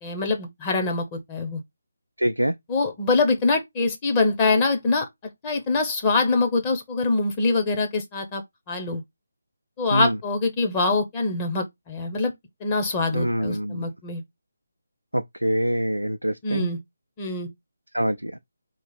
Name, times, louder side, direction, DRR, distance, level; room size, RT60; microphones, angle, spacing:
voice 1, 0.0-1.6 2.7-5.1 5.4-8.4 8.7-9.0 9.8-12.3 12.6-14.2 16.4-16.8 17.2-17.5, left 3 dB, 20° left, 0.8 m, -24 dB
voice 2, 2.2-2.5 9.9-10.2 13.1-13.9 15.1-16.7 17.9-18.3, equal, 85° right, 0.4 m, -24 dB
3.9 x 2.9 x 3.8 m
figure-of-eight pair, 150°, 0 cm